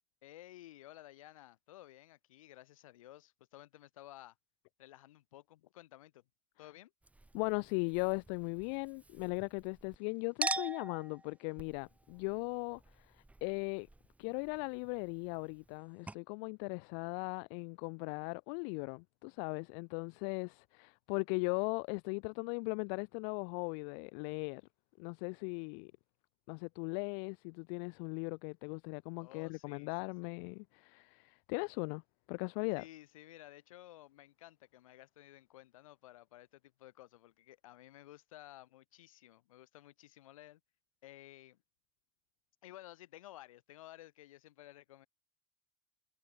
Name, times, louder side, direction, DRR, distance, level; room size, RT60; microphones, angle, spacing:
voice 1, 0.2-4.3 4.8-6.2 6.6-6.9 29.2-30.1 32.7-40.6 41.0-41.6 42.6-45.1, left 15 dB, 65° left, 4.7 m, -55 dB
Chink clink, 7.0-10.0 10.4-15.8 16.1-16.2, right 2 dB, 10° right, 2.8 m, -44 dB
voice 2, 7.3-13.1 13.4-13.9 14.2-24.6 25.0-25.9 26.5-32.0 32.3-32.8, left 40 dB or more, 50° left, 0.5 m, -38 dB
figure-of-eight pair, 75°, 18 cm